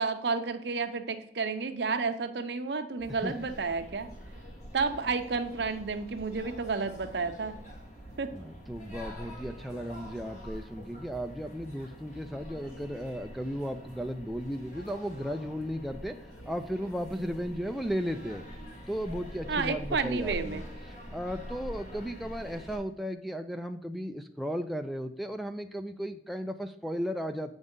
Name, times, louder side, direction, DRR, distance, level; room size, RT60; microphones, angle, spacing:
voice 1, 0.0-4.1 4.7-7.6 8.2-8.3 19.5-20.7, right 4 dB, 65° right, 8 dB, 0.6 m, -31 dB
sound 1, 3.0-22.8, equal, 45° left, 1.7 m, -45 dB
voice 2, 8.3-18.4 18.9-20.6 21.1-27.5, equal, ahead, 4 dB, 0.4 m, -35 dB
8.0 x 5.3 x 3.7 m, 0.69 s
head